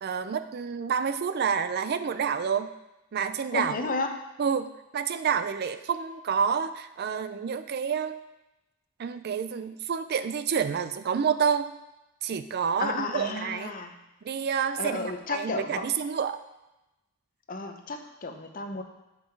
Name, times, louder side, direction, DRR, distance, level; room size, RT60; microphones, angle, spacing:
voice 1, 0.0-2.7 3.1-3.7 4.4-8.2 9.0-11.7 12.2-13.7 14.2-16.4, right 7 dB, 50° right, 11 dB, 0.4 m, -28 dB
voice 2, 3.5-4.2 12.8-13.9 14.8-15.9 17.5-18.8, left 3 dB, 40° left, 5 dB, 0.7 m, -32 dB
8.3 x 5.1 x 4.6 m, 0.96 s
head